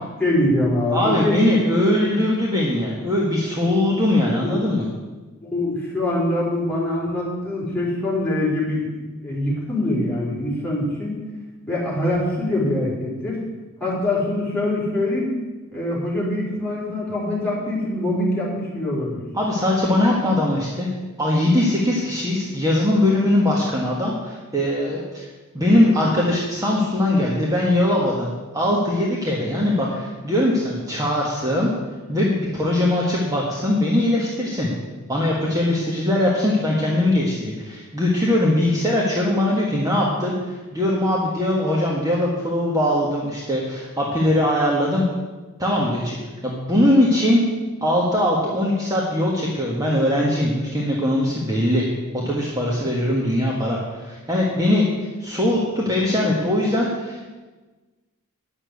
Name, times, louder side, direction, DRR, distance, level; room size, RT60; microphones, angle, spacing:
voice 1, 0.0-1.6 1.9-2.2 4.4-4.8 5.4-11.2 11.7-13.4 13.8-15.3 15.7-19.2, left 1 dB, 5° left, -7 dB, 4.2 m, -24 dB
voice 2, 0.9-4.8 19.3-20.9 21.2-25.3 25.5-31.7 32.1-34.7 35.1-45.0 45.6-46.2 46.4-47.4 47.8-51.8 52.1-54.9 55.2-57.3, left 1 dB, 15° right, -4 dB, 1.5 m, -21 dB
9.9 x 7.2 x 8.3 m, 1.3 s
head